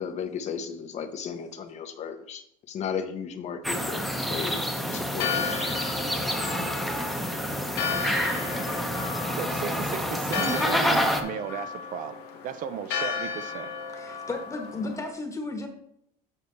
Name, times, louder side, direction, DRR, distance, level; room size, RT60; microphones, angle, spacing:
voice 1, 0.0-4.0 4.3-5.6, left 7 dB, 45° left, 0.8 m, -35 dB
sound 1, 3.6-11.2, equal, ahead, 0.8 m, -28 dB
Church bell, 4.9-15.1, left 6 dB, 75° left, 1.2 m, -34 dB
voice 2, 9.4-13.7, right 9 dB, 50° right, 0.5 m, -35 dB
voice 3, 13.9-15.7, left 2 dB, 20° left, 1.2 m, -34 dB
7.3 x 6.4 x 3.2 m
cardioid pair, 125°, 17 cm